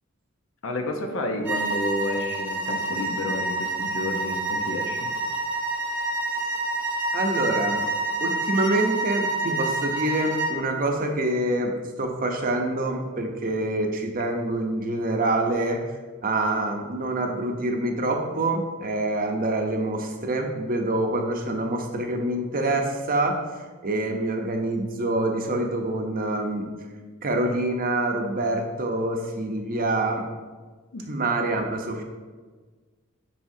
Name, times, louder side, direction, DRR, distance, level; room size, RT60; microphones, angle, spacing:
voice 1, 0.6-5.1 30.9-31.1, left 1 dB, 65° left, 3 dB, 0.8 m, -30 dB
sound 1, 1.4-10.6, right 2 dB, 10° right, 1.0 m, -28 dB
voice 2, 7.1-7.8 8.2-15.8 16.2-23.4 23.8-26.7 27.2-30.2 31.1-32.0, right 2 dB, 45° right, 3 dB, 0.8 m, -26 dB
9.7 x 4.2 x 2.7 m, 1.4 s
head